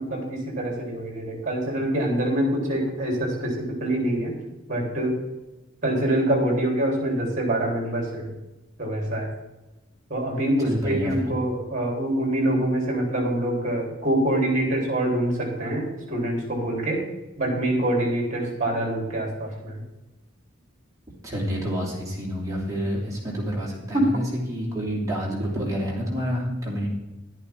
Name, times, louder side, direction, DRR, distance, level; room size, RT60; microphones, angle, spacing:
voice 1, 0.0-4.4 4.7-5.2 5.8-8.3 8.8-9.3 10.1-17.0 17.4-19.8, right 1 dB, 35° right, 0 dB, 3.7 m, -25 dB
voice 2, 10.6-11.1 21.2-26.9, equal, 15° right, -5 dB, 3.2 m, -28 dB
11.5 x 11.0 x 3.7 m, 1.0 s
head